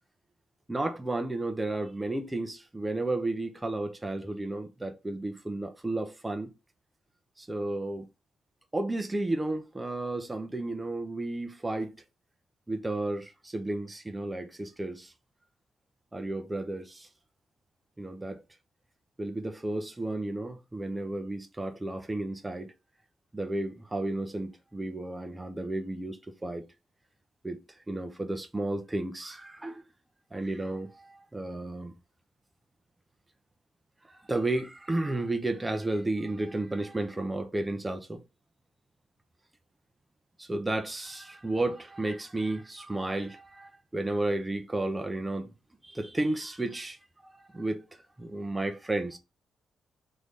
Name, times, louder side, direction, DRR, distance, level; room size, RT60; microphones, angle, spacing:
voice 1, 0.7-6.5 7.4-8.1 8.7-11.9 12.7-15.1 16.1-17.1 18.0-18.4 19.2-22.7 23.3-26.6 27.4-27.6 27.9-29.8 30.3-31.9 34.3-38.2 40.4-45.5 45.8-47.0 47.4-47.8 48.2-49.2, right 2 dB, 10° right, 0.5 m, -32 dB
3.1 x 2.6 x 3.4 m
cardioid pair, 135°, 0 cm